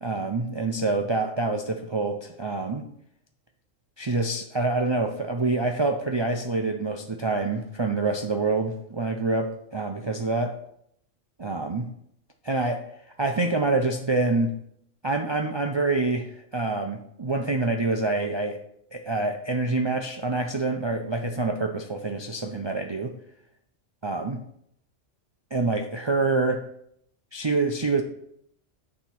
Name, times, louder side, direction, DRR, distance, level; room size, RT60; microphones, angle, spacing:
voice 1, 0.0-2.8 4.0-10.6 11.4-11.9 12.4-12.8 13.2-14.6 15.0-18.6 18.9-23.1 24.0-24.4 25.5-26.6 27.3-28.0, right 3 dB, 45° right, 3 dB, 0.3 m, -26 dB
8.7 x 3.6 x 5.8 m, 0.72 s
omnidirectional pair, 1.3 m